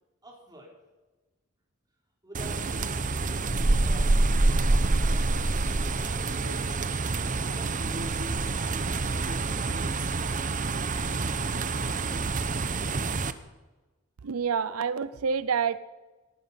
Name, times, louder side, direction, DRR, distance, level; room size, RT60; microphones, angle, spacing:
voice 1, 0.2-0.7 2.2-2.9 3.6-4.2 4.6-5.4 5.7-6.7 7.3-8.2 8.6-9.1, equal, 20° right, -1 dB, 4.0 m, -49 dB
sound 1, 2.3-13.3, right 3 dB, 40° right, 0.8 m, -27 dB
voice 2, 14.2-15.8, right 6 dB, 90° right, 16 dB, 0.5 m, -27 dB
18.5 x 11.5 x 5.6 m, 1.2 s
head